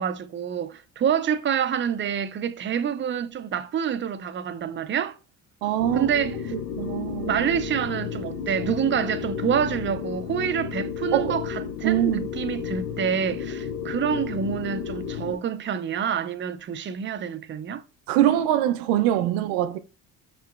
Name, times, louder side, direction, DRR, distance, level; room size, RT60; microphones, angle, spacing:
voice 1, 0.0-5.2 5.9-6.4 7.2-17.8, right 8 dB, 35° right, 0.4 m, -27 dB
voice 2, 5.6-6.3 6.8-7.4 11.1-11.4 11.8-12.3 18.1-19.8, right 12 dB, 85° right, 0.5 m, -23 dB
sound 1, 5.8-15.4, left 7 dB, 90° left, 0.6 m, -32 dB
5.4 x 2.9 x 2.3 m
supercardioid pair, 75°, 36 cm